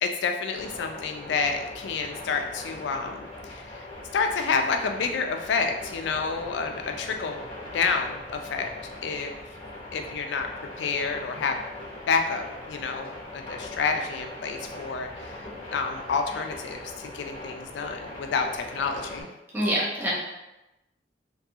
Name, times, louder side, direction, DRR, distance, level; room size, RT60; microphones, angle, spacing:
voice 1, 0.0-3.8 4.1-7.4 7.7-8.7 9.0-9.3 9.9-10.5 10.8-11.6 12.1-19.3, left 5 dB, 80° left, 5 dB, 0.3 m, -29 dB
sound 1, 0.5-19.2, left 1 dB, 30° left, 0.8 m, -41 dB
voice 2, 19.5-20.1, equal, 10° right, -7 dB, 0.6 m, -25 dB
2.6 x 2.3 x 2.7 m, 0.96 s
head